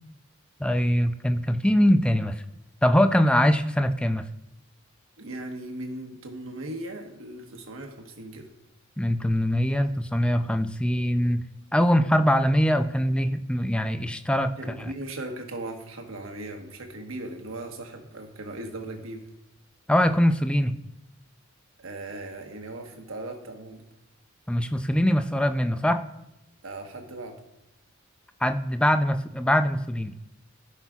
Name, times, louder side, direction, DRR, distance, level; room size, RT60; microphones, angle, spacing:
voice 1, 0.6-2.4 2.8-4.2 9.0-11.4 11.7-14.9 19.9-20.7 24.5-26.0 28.4-30.1, equal, 5° left, 8 dB, 0.4 m, -23 dB
voice 2, 5.2-8.5 14.6-19.2 21.8-23.8 26.6-27.4, right 2 dB, 75° right, 3 dB, 1.2 m, -38 dB
15.0 x 5.6 x 2.4 m, 0.87 s
head